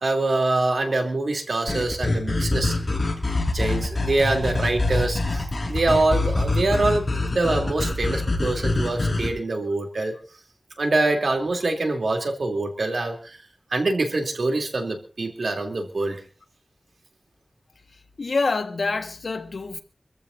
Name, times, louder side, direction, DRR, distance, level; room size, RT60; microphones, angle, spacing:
voice 1, 0.0-2.8 3.5-7.1 7.3-10.1 10.8-13.4 13.7-16.2, right 2 dB, 85° right, 3.0 m, -24 dB
sound 1, 1.7-9.3, left 2 dB, 50° left, 5.5 m, -25 dB
voice 2, 18.2-19.8, left 3 dB, 85° left, 1.4 m, -26 dB
26.0 x 14.5 x 2.7 m
wide cardioid pair, 80°, 0 cm